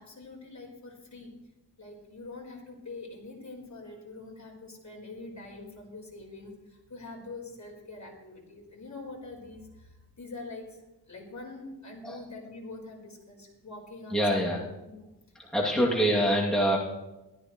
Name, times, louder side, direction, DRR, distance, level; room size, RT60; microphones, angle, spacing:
voice 1, 0.0-1.3 1.8-14.5 14.8-15.1 15.6-16.2, left 3 dB, 40° left, -1 dB, 4.5 m, -44 dB
voice 2, 14.1-14.7 15.5-16.8, equal, ahead, -4 dB, 2.6 m, -25 dB
16.0 x 13.5 x 3.1 m, 0.98 s
cardioid pair, 75°, 42 cm